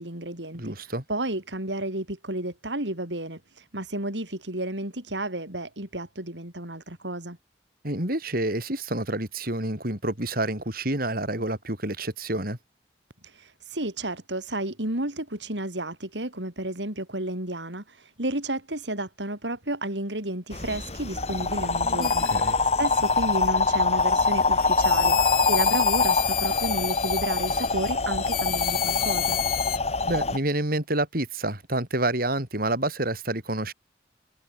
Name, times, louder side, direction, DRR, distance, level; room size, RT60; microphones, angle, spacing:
voice 1, 0.0-0.7 1.1-7.4 13.3-29.4, right 1 dB, 90° right, 6.5 m, -32 dB
voice 2, 0.6-1.0 7.8-12.6 22.0-22.6 30.0-33.7, right 1 dB, 55° right, 7.4 m, -28 dB
sound 1, 20.5-30.4, left 4 dB, 40° left, 4.2 m, -24 dB
sound 2, 22.0-22.5 22.9-23.5 24.0-27.9 28.2-29.8, left 12 dB, 55° left, 6.3 m, -31 dB
head